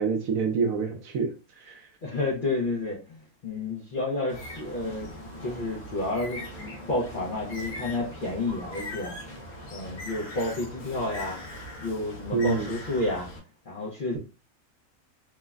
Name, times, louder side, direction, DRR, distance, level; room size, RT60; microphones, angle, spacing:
voice 1, 0.0-1.9 12.3-12.7, right 5 dB, 70° right, 1.0 m, -27 dB
voice 2, 2.0-5.1 5.4-6.4 6.9-9.2 9.7-11.4 11.8-13.3 13.7-14.2, left 2 dB, 60° left, 0.5 m, -30 dB
Bird, 4.3-13.4, left 1 dB, 75° left, 1.3 m, -40 dB
3.2 x 2.1 x 2.3 m
omnidirectional pair, 1.6 m